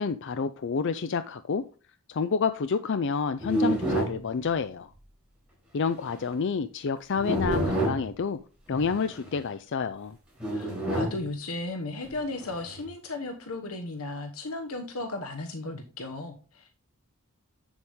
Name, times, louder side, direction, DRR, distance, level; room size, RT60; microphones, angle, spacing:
voice 1, 0.0-1.6 2.1-4.9 5.7-8.4 8.7-10.2, left 5 dB, 55° left, 0.5 m, -29 dB
sound 1, 3.4-4.2 5.9-6.2 7.1-8.1 8.7-9.3 10.4-11.2 12.1-12.9, right 1 dB, 5° right, 4.4 m, -29 dB
voice 2, 10.5-16.8, left 2 dB, 85° left, 1.2 m, -35 dB
8.0 x 7.1 x 3.5 m
head